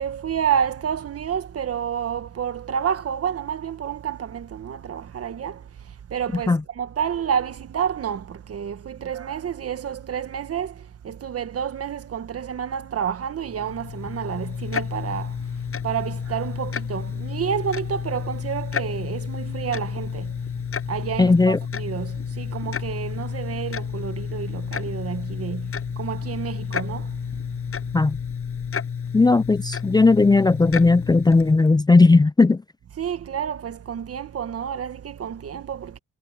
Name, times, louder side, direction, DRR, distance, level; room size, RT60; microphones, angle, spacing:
voice 1, 0.0-27.3 33.0-36.0, right 8 dB, 50° right, 1.6 m, -29 dB
Tick-tock, 13.4-31.7, left 7 dB, 45° left, 7.1 m, -31 dB
voice 2, 21.2-21.6 27.9-28.2 29.1-32.6, left 3 dB, 15° left, 0.5 m, -16 dB
cardioid pair, 90°, 30 cm